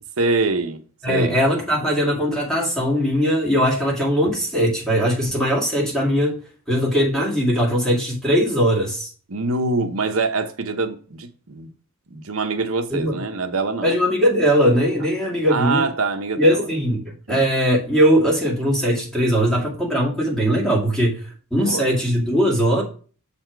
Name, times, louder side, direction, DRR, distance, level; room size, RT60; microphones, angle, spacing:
voice 1, 0.2-0.8 1.1-1.4 9.3-11.7 12.1-13.9 15.5-16.6 17.3-17.4 21.6-21.9, right 3 dB, 75° right, 0.9 m, -24 dB
voice 2, 1.0-6.4 6.7-9.1 12.9-13.2 13.8-15.9 16.4-22.8, equal, 5° left, 2.2 m, -20 dB
7.1 x 4.3 x 4.6 m
head